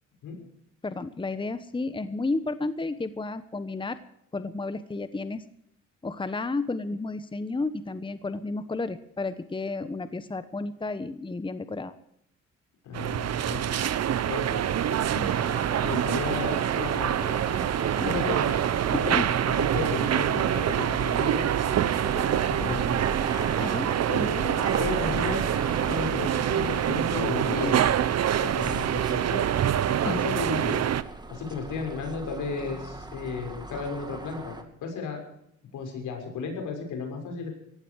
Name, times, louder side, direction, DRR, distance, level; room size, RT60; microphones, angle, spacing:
voice 1, 0.8-4.0 4.3-5.4 6.0-11.9 15.1-15.3 18.0-18.3 18.9-19.3 23.6-23.9 30.0-30.2, left 3 dB, 15° left, 12 dB, 1.1 m, -32 dB
voice 2, 12.8-13.7 14.2-14.6 14.9-15.0 15.8-17.4 18.0-18.6 19.6-21.5 22.0-23.0 24.1-25.5 25.8-27.8 28.4-29.5 30.0-30.8 31.3-34.6 34.8-35.2 35.7-37.5, left 5 dB, 80° left, 3 dB, 6.5 m, -34 dB
sound 1, 12.9-31.0, right 10 dB, 55° right, 1.0 m, -26 dB
sound 2, 15.2-34.6, right 2 dB, 15° right, 2.5 m, -38 dB
19.5 x 15.0 x 4.8 m, 0.75 s
cardioid pair, 90°, 30 cm